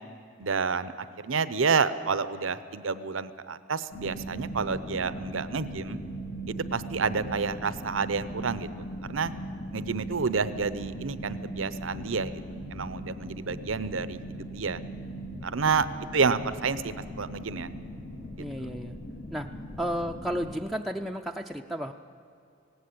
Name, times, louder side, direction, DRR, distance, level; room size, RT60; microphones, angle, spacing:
voice 1, 0.4-6.0 6.5-8.7 9.0-9.3 9.7-12.4 12.7-14.8 15.4-15.9 16.1-17.7, right 5 dB, 90° right, 14 dB, 0.7 m, -29 dB
sound 1, 3.9-20.5, right 1 dB, 85° left, 2.7 m, -39 dB
voice 2, 15.7-16.4 18.4-19.0 19.3-19.5 19.8-21.9, equal, ahead, 5 dB, 0.4 m, -33 dB
17.5 x 17.5 x 8.5 m, 2.5 s
head